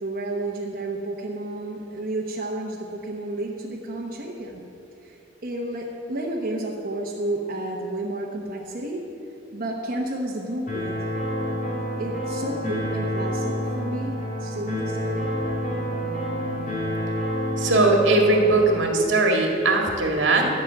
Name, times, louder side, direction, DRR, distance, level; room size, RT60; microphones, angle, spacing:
voice 1, 0.0-4.6 5.0-9.0 9.5-11.1 12.0-15.3, right 1 dB, 50° right, -2 dB, 1.0 m, -31 dB
sound 1, 10.7-18.7, equal, 45° left, 3.3 m, -28 dB
voice 2, 17.6-20.5, right 2 dB, 75° right, 1 dB, 1.9 m, -19 dB
12.0 x 5.9 x 9.2 m, 2.9 s
head